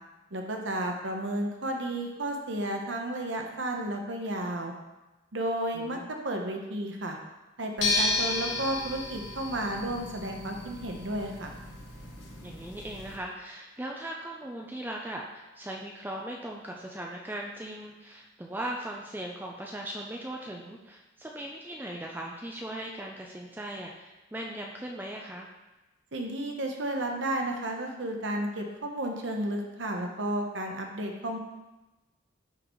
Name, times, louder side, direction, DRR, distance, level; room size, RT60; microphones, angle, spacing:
voice 1, 0.3-4.7 5.3-6.0 6.2-7.2 7.6-11.5 26.1-31.4, right 1 dB, 65° right, 2 dB, 1.0 m, -32 dB
voice 2, 5.7-6.1 12.4-25.5, right 1 dB, 10° right, -1 dB, 0.4 m, -39 dB
sound 1, 7.8-13.2, left 2 dB, 60° left, 1.2 m, -33 dB
11.5 x 3.9 x 3.1 m, 1.1 s
head